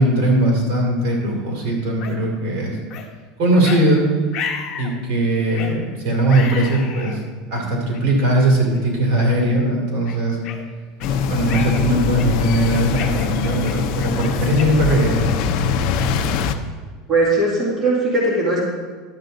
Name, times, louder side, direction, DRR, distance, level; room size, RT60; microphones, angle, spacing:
voice 1, 0.0-2.8 3.4-4.1 4.8-7.2 7.5-10.4 11.3-15.3, right 1 dB, 60° right, 0 dB, 2.6 m, -19 dB
sound 1, 2.0-2.2 2.9-3.1 3.6-3.8 4.3-4.9 5.5-5.8 6.3-7.2 7.9-8.0 8.7-8.9 9.4-9.5 10.1-11.1 11.5-11.8 12.2-12.5 13.0-15.5, left 7 dB, 40° left, 1.1 m, -32 dB
sound 2, 11.0-16.5, left 6 dB, 55° left, 0.6 m, -22 dB
voice 2, 17.1-18.7, right 2 dB, 20° right, -5 dB, 2.2 m, -19 dB
11.5 x 7.6 x 3.9 m, 1.5 s
supercardioid pair, 165°, 0 cm